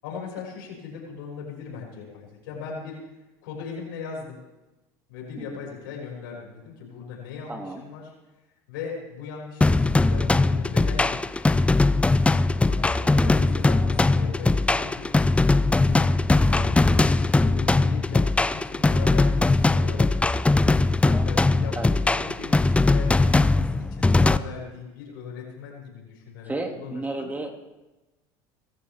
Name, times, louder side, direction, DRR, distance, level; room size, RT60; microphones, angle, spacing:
voice 1, 0.0-3.0 3.4-4.4 5.1-8.1 8.7-11.8 12.7-15.1 15.8-20.4 21.0-27.3, left 6 dB, 85° left, -2 dB, 6.4 m, -39 dB
voice 2, 7.5-7.8 13.1-13.6 21.7-22.0 26.4-27.5, right 2 dB, 15° right, 3 dB, 2.6 m, -33 dB
sound 1, 9.6-24.4, left 2 dB, 10° left, 0.5 m, -20 dB
24.0 x 14.5 x 3.6 m, 1.1 s
supercardioid pair, 90°, 11 cm